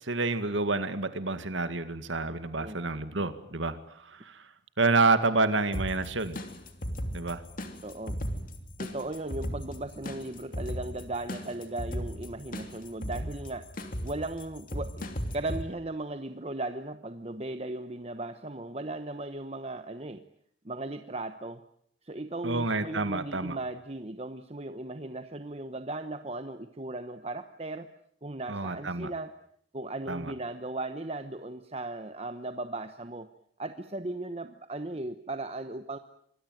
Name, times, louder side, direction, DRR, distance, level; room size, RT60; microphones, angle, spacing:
voice 1, 0.0-3.8 4.0-4.4 4.8-6.4 7.1-7.4 22.4-23.6 28.5-29.1 30.1-30.3, right 3 dB, 80° right, 10 dB, 2.1 m, -28 dB
sound 1, 5.7-15.6, equal, 45° left, 3.1 m, -37 dB
voice 2, 7.8-8.2 8.8-13.7 14.0-20.2 20.6-21.6 22.0-27.9 28.2-29.3 29.7-33.3 33.6-36.0, right 2 dB, 30° right, 9 dB, 1.1 m, -37 dB
26.5 x 21.5 x 9.3 m, 0.68 s
head